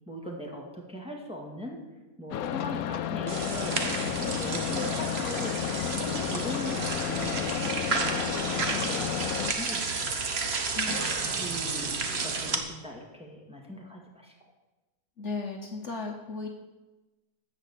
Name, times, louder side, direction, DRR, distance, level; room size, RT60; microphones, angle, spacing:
voice 1, 0.1-1.8 2.2-7.5 8.0-10.2 10.9-14.3, left 1 dB, 5° right, -1 dB, 2.0 m, -40 dB
sound 1, 2.3-9.5, left 11 dB, 75° left, 1.0 m, -32 dB
sound 2, 3.3-12.6, right 4 dB, 45° right, 1.4 m, -31 dB
voice 2, 10.7-11.4 15.2-16.5, left 3 dB, 55° left, 2 dB, 1.3 m, -36 dB
14.0 x 5.2 x 8.4 m, 1.1 s
omnidirectional pair, 1.6 m